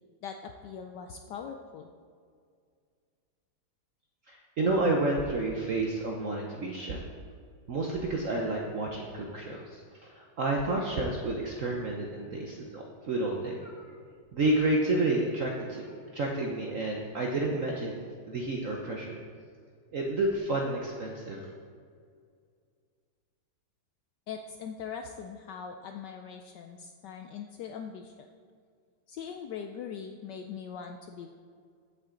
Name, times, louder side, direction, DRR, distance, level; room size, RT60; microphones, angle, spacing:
voice 1, 0.2-1.9 24.3-28.3 29.1-31.3, left 7 dB, 75° left, 5 dB, 1.0 m, -41 dB
voice 2, 4.3-7.0 7.7-13.8 14.3-18.0 18.3-19.2 19.9-21.5, right 2 dB, 60° right, 0 dB, 0.8 m, -30 dB
14.5 x 5.8 x 3.8 m, 2.1 s
omnidirectional pair, 2.3 m